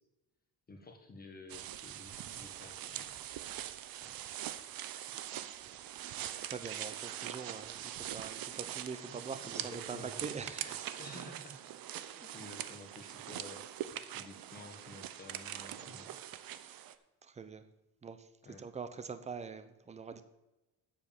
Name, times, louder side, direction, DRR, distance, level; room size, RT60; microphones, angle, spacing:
voice 1, 0.7-3.2 4.0-4.1 5.1-5.2 9.1-10.2 11.0-11.6 12.0-16.1 18.4-18.6, left 2 dB, 25° left, 2 dB, 1.3 m, -52 dB
sound 1, 1.5-16.9, right 11 dB, 65° right, 0.7 m, -43 dB
voice 2, 6.4-10.8 16.5-16.8 17.2-17.6 18.0-18.3 18.6-20.2, right 5 dB, 20° right, 11 dB, 0.6 m, -44 dB
8.1 x 7.4 x 7.0 m, 1.0 s
cardioid pair, 160°, 39 cm